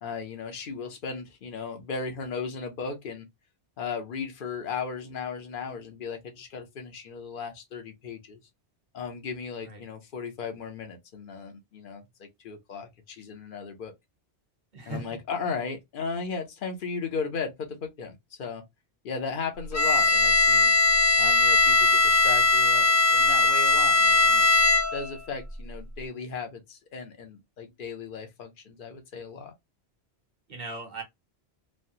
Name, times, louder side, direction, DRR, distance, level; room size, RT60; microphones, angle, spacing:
voice 1, 0.0-3.3 3.8-8.4 8.9-13.9 14.9-18.6 19.0-20.7 21.2-24.5 24.9-29.5, left 5 dB, 55° left, 0.9 m, -36 dB
voice 2, 14.7-15.2 30.5-31.0, right 2 dB, 45° right, 1.1 m, -38 dB
Bowed string instrument, 19.7-25.2, left 3 dB, 20° left, 0.5 m, -20 dB
3.2 x 2.1 x 2.6 m
omnidirectional pair, 1.1 m